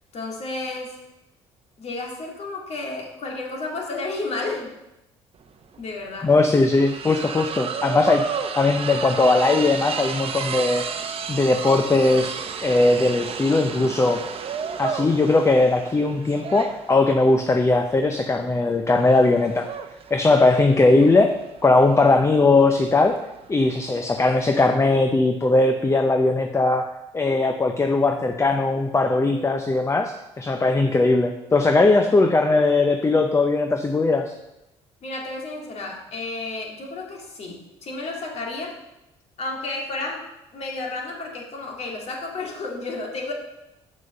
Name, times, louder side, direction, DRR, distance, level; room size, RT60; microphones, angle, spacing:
voice 1, 0.1-1.0 1.8-4.7 5.8-6.3 20.4-20.5 35.0-38.8 39.4-40.2 40.5-43.3, left 3 dB, 50° left, -1 dB, 2.4 m, -32 dB
sound 1, 5.4-5.5 5.7-24.6, right 6 dB, 45° right, 0.8 m, -33 dB
voice 2, 6.2-10.9 11.3-14.3 14.8-19.7 20.1-23.2 23.5-34.3, left 2 dB, 20° left, 6 dB, 0.7 m, -19 dB
7.0 x 6.1 x 5.5 m, 0.92 s
hypercardioid pair, 60°, 14 cm